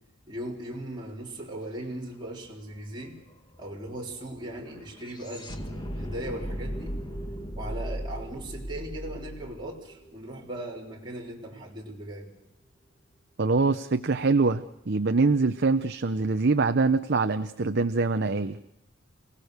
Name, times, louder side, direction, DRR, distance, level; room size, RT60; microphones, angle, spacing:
voice 1, 0.3-3.2 3.6-7.0 7.5-12.3, right 1 dB, 25° right, -4 dB, 3.9 m, -38 dB
sound 1, 2.1-2.2 2.4-10.6, equal, 25° left, 1.9 m, -38 dB
voice 2, 13.4-18.6, right 3 dB, 55° right, 8 dB, 0.8 m, -24 dB
29.0 x 18.0 x 6.7 m, 0.89 s
head